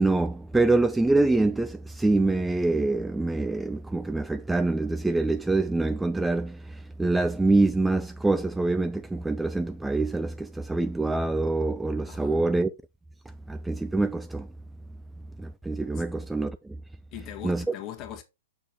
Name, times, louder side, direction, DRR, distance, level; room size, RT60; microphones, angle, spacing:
voice 1, 0.0-12.7 13.5-14.5 15.4-16.8 17.4-17.6, right 2 dB, 5° right, 0.3 m, -25 dB
voice 2, 12.0-12.4 15.9-16.0 17.1-18.2, left 12 dB, 30° left, 1.6 m, -40 dB
6.6 x 6.5 x 2.8 m
hypercardioid pair, 125°, 0 cm